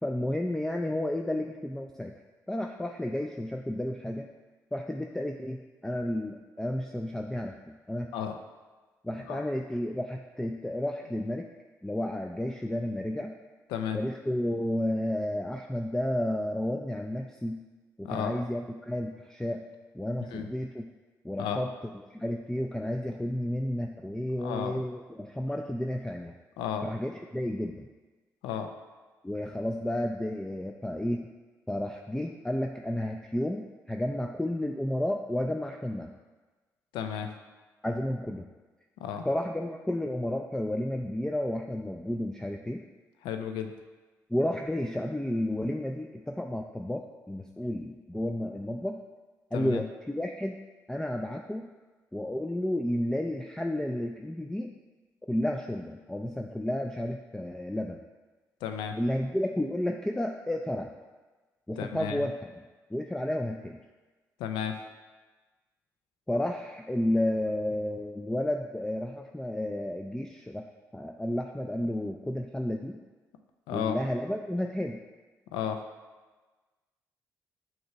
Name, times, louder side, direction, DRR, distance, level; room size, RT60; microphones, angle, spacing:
voice 1, 0.0-2.1 2.5-4.3 4.7-8.1 9.0-11.5 11.8-13.3 13.9-17.6 18.0-19.6 19.9-20.8 21.2-26.3 26.8-27.9 29.2-31.3 31.7-36.1 37.8-38.5 39.2-42.8 44.3-49.0 49.5-50.6 50.9-51.7 52.1-54.7 55.3-58.0 59.0-60.9 61.7-62.3 62.9-63.8 66.3-70.7 70.9-73.0 73.7-75.0, left 1 dB, 5° left, 3 dB, 0.4 m, -32 dB
voice 2, 18.0-18.4 20.3-20.5 21.4-21.6 24.4-24.8 26.6-26.9 28.4-28.7 36.9-37.3 39.0-39.2 43.2-43.7 49.5-49.8 58.6-59.0 61.8-62.2 64.4-64.8 73.7-73.9 75.5-75.8, left 8 dB, 85° left, 6 dB, 0.5 m, -33 dB
6.4 x 3.0 x 5.6 m, 1.3 s
supercardioid pair, 50°, 8 cm